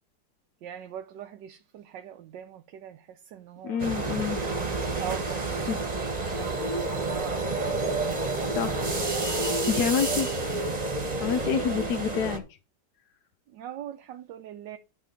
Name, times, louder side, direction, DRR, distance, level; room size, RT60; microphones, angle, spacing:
voice 1, 0.6-3.8 5.0-7.8 9.0-9.9 13.5-14.8, right 9 dB, 90° right, 1.4 m, -41 dB
voice 2, 3.6-4.4 5.7-5.8 8.5-8.9 9.7-10.3 11.2-12.4, left 7 dB, 70° left, 1.2 m, -27 dB
sound 1, 3.8-12.4, right 2 dB, 25° right, 1.2 m, -29 dB
11.0 x 3.7 x 6.9 m
omnidirectional pair, 1.9 m